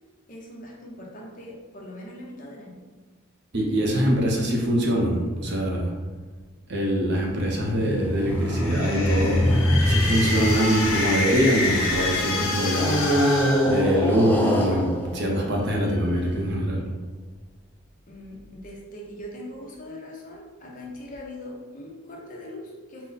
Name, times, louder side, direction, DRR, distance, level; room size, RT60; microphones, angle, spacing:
voice 1, 0.3-2.8 18.1-23.1, left 1 dB, 40° left, -2 dB, 0.7 m, -41 dB
voice 2, 3.5-5.9 6.7-9.4 9.9-13.1 13.6-16.9, equal, 55° right, 0 dB, 0.7 m, -23 dB
sound 1, 7.3-12.0 12.7-16.1, equal, 10° left, 0.3 m, -25 dB
sound 2, 8.4-14.5, left 2 dB, 80° left, 0.7 m, -28 dB
3.8 x 2.1 x 3.9 m, 1.4 s
head